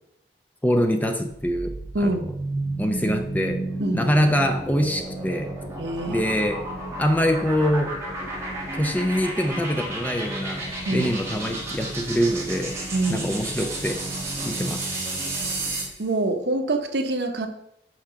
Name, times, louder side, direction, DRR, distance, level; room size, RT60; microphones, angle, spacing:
voice 1, 0.6-1.7 2.0-2.2 2.8-3.6 3.9-5.5 6.1-6.6 7.0-8.0 8.7-12.7 13.1-14.0 14.4-14.8, equal, 10° left, 5 dB, 0.5 m, -24 dB
Futuristic Suspense, 1.3-16.0, right 2 dB, 15° right, 1.7 m, -32 dB
voice 2, 1.9-2.3 3.8-4.1 5.8-6.3 10.9-11.1 12.9-13.3 15.4-15.5 16.0-17.5, right 2 dB, 80° right, 6 dB, 0.9 m, -25 dB
6.0 x 5.0 x 5.6 m, 0.78 s
head